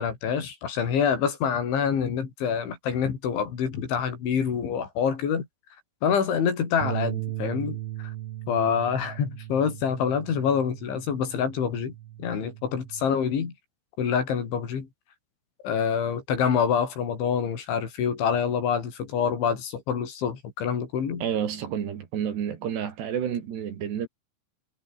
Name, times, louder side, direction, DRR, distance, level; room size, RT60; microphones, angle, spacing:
voice 1, 0.0-5.5 6.0-8.1 8.5-11.9 12.2-13.5 14.0-14.9 15.6-21.2, left 7 dB, 70° left, 6.5 m, -26 dB
Bass guitar, 6.8-13.1, right 14 dB, 80° right, 4.0 m, -37 dB
voice 2, 21.2-24.1, right 9 dB, 60° right, 4.5 m, -30 dB
omnidirectional pair, 5.7 m